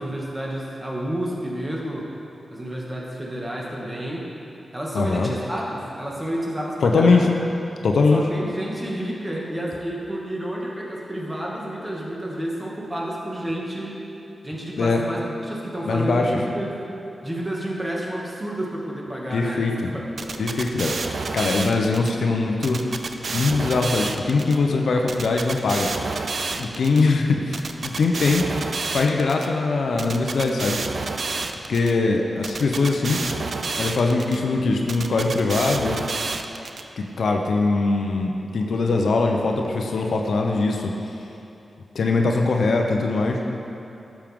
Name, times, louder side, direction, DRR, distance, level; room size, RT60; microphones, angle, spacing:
voice 1, 0.0-2.1 2.5-4.3 4.7-7.3 8.1-14.0 14.4-16.8 17.2-20.4, right 1 dB, 20° right, -3 dB, 2.3 m, -30 dB
voice 2, 4.9-5.3 6.8-7.3 7.8-8.2 14.8-15.0 15.9-16.3 19.3-19.9 20.4-22.8 23.3-25.9 26.6-28.5 28.9-30.8 31.7-33.2 33.8-36.0 37.0-40.9 41.9-43.4, left 3 dB, 80° left, 2 dB, 0.8 m, -21 dB
sound 1, 20.2-22.1 22.6-24.6 25.1-27.0 27.5-29.5 30.0-31.9 32.4-34.4 34.9-36.8, right 4 dB, 65° right, 0.5 m, -29 dB
11.5 x 7.4 x 3.7 m, 2.9 s
cardioid pair, 45°, 0 cm